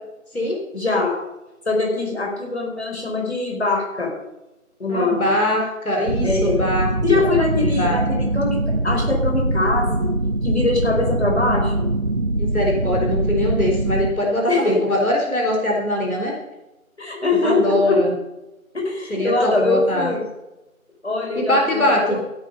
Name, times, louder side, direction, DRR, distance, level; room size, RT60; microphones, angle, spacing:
voice 1, 0.7-1.2 1.6-4.1 4.8-5.3 6.2-6.6 7.0-10.1 10.4-11.9 14.5-14.8 17.0-18.0 18.7-20.2 21.0-22.2, left 3 dB, 50° left, 1 dB, 4.4 m, -22 dB
voice 2, 4.9-6.9 7.1-7.3 7.8-8.0 12.4-16.3 17.4-18.1 19.1-20.1 21.4-22.2, left 1 dB, 75° left, 0 dB, 4.3 m, -22 dB
sound 1, 6.1-14.1, right 1 dB, 45° right, 1.3 m, -22 dB
15.5 x 8.7 x 5.4 m, 0.98 s
figure-of-eight pair, 170°, 42 cm